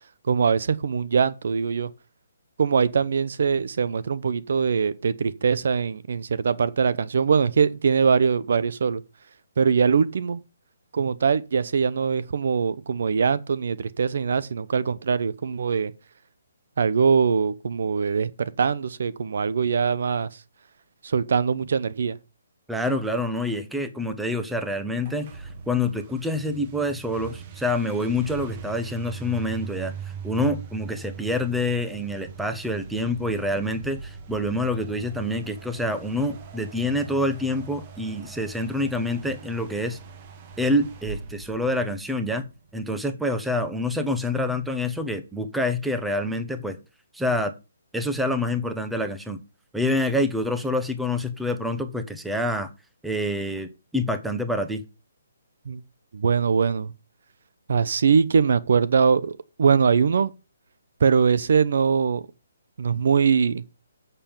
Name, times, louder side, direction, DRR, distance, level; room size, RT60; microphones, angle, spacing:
voice 1, 0.3-1.9 2.6-9.0 9.6-10.4 10.9-15.9 16.8-20.3 21.0-22.2 55.7-55.8 56.1-56.9 57.7-60.3 61.0-62.2 62.8-63.6, right 6 dB, 60° right, 0.8 m, -22 dB
voice 2, 22.7-29.9 30.2-40.0 40.6-42.4 42.7-46.8 47.1-47.5 47.9-49.4 49.7-52.7 53.0-54.8, left 1 dB, 5° right, 0.9 m, -27 dB
sound 1, 25.0-42.5, right 6 dB, 30° right, 1.5 m, -41 dB
7.5 x 6.8 x 7.2 m
hypercardioid pair, 160°, 0 cm